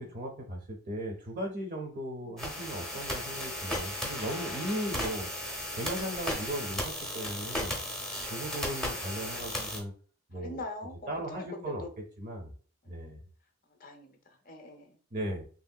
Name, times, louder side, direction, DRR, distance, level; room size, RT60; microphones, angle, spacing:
voice 1, 0.0-5.3 5.8-7.8 8.3-9.9 10.3-10.6 11.1-11.8 12.2-12.5 12.9-13.2 15.1-15.4, equal, 35° right, 2 dB, 0.6 m, -37 dB
sound 1, 2.4-9.8, left 1 dB, 5° left, 0.7 m, -35 dB
voice 2, 10.3-11.9 12.8-13.1 13.7-15.0, left 2 dB, 40° left, 4 dB, 0.6 m, -44 dB
3.1 x 2.7 x 2.2 m, 0.41 s
head